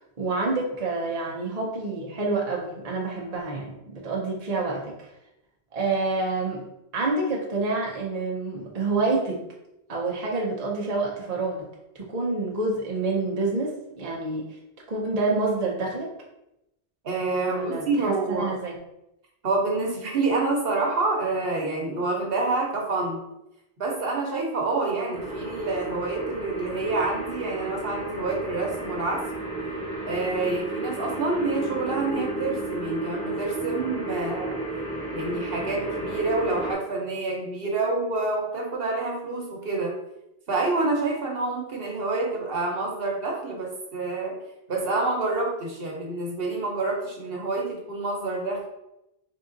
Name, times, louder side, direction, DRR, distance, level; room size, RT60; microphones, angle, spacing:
voice 1, 0.2-5.1 5.7-6.6 6.9-9.4 9.9-11.7 12.0-14.5 14.9-16.1 17.5-18.8, right 3 dB, 45° right, -2 dB, 0.7 m, -28 dB
voice 2, 17.0-18.5 19.4-23.2 23.8-29.2 30.1-34.6 35.1-39.9 40.5-44.3 44.7-48.7, right 3 dB, 65° right, -1 dB, 1.1 m, -27 dB
sound 1, 25.1-36.7, right 2 dB, 25° left, 0.8 m, -33 dB
3.7 x 2.4 x 3.8 m, 0.87 s
omnidirectional pair, 1.0 m